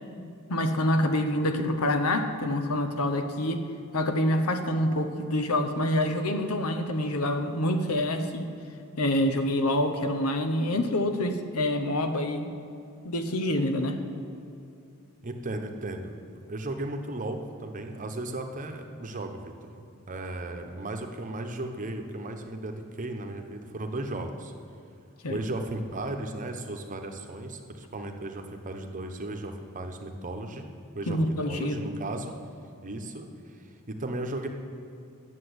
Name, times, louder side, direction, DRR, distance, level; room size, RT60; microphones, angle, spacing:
voice 1, 0.5-3.6 3.9-8.5 9.0-12.5 13.0-14.0 25.2-25.4 31.1-31.8, left 1 dB, 90° left, 8 dB, 1.0 m, -26 dB
voice 2, 15.2-16.1 16.5-24.5 25.3-30.7 30.9-32.4 32.8-34.5, right 2 dB, 35° right, 4 dB, 0.9 m, -35 dB
10.0 x 7.6 x 7.9 m, 2.6 s
head